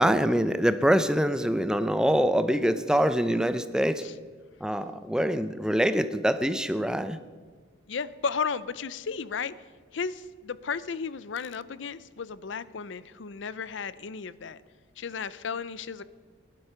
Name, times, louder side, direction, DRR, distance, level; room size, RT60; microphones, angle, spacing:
voice 1, 0.0-4.0 4.6-7.2, equal, 5° right, 11 dB, 0.5 m, -24 dB
voice 2, 7.9-9.5 9.9-14.6 15.0-16.0, left 5 dB, 75° left, 17 dB, 0.5 m, -34 dB
18.0 x 11.5 x 5.7 m, 1.5 s
head